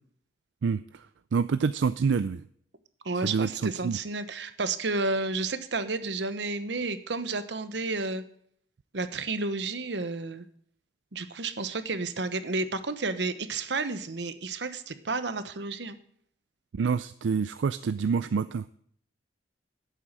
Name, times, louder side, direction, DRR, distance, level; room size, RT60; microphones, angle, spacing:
voice 1, 0.6-1.0 1.3-2.4 3.2-4.0 16.7-18.6, right 5 dB, 90° right, 14 dB, 0.4 m, -27 dB
voice 2, 3.0-8.2 8.9-10.4 11.1-16.0, right 3 dB, 75° right, 11 dB, 1.0 m, -31 dB
11.5 x 8.3 x 7.4 m, 0.65 s
head